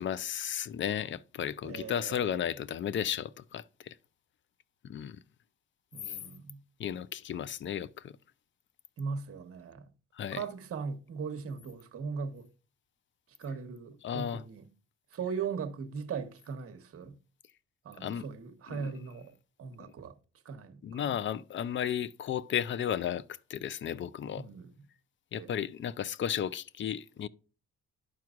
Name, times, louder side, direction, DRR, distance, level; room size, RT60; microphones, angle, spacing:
voice 1, 0.0-4.0 4.8-5.2 6.1-6.2 6.8-8.2 10.2-10.4 14.0-14.4 18.0-18.2 18.7-18.9 19.8-19.9 20.8-23.2 23.5-24.4 25.3-27.3, left 9 dB, 40° left, 0.4 m, -34 dB
voice 2, 1.6-2.3 5.9-6.6 9.0-9.8 10.3-12.5 13.4-14.7 15.1-17.1 17.8-19.3 19.6-20.1 20.4-21.2 24.4-24.7 25.3-25.5, right 5 dB, 50° right, 1.0 m, -39 dB
11.5 x 4.6 x 2.4 m
cardioid pair, 90°, 30 cm